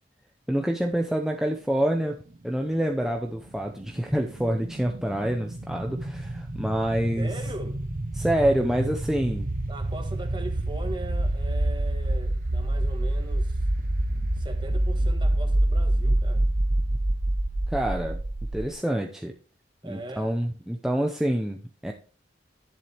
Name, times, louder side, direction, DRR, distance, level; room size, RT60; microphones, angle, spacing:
voice 1, 0.5-2.2 2.4-7.3 8.1-9.5 17.7-18.2 18.5-19.3 19.8-21.9, right 1 dB, 5° right, 0.6 m, -27 dB
sound 1, 2.8-18.7, right 1 dB, 45° right, 0.7 m, -27 dB
voice 2, 7.2-7.8 9.7-13.6 14.3-16.5 19.8-20.3, right 1 dB, 25° right, 1.4 m, -39 dB
11.0 x 7.2 x 3.4 m
head